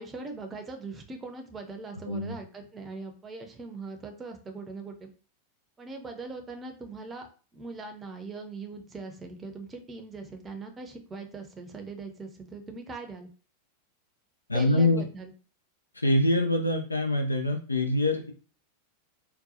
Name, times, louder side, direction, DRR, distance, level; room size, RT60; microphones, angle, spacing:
voice 1, 0.0-5.1 5.8-13.3 14.5-15.3, right 3 dB, 20° right, 4 dB, 0.6 m, -41 dB
voice 2, 14.5-15.0 15.9-18.3, left 1 dB, 80° left, 5 dB, 0.4 m, -25 dB
3.9 x 2.2 x 2.7 m, 0.38 s
figure-of-eight pair, 90°, 0 cm